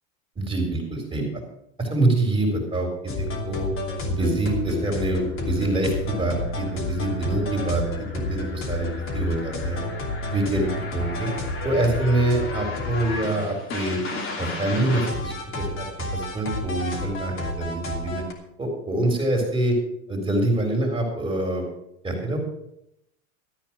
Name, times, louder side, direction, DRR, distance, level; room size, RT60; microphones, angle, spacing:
voice 1, 0.4-1.4 1.8-3.7 4.0-9.8 10.3-10.7 10.9-11.3 11.6-14.0 14.4-18.2 18.6-19.8 20.1-21.6 22.0-22.4, right 2 dB, 15° right, 1 dB, 4.1 m, -25 dB
sound 1, 3.1-18.3, left 2 dB, 30° left, 2.8 m, -31 dB
14.0 x 8.9 x 6.1 m, 0.79 s
supercardioid pair, 125°, 41 cm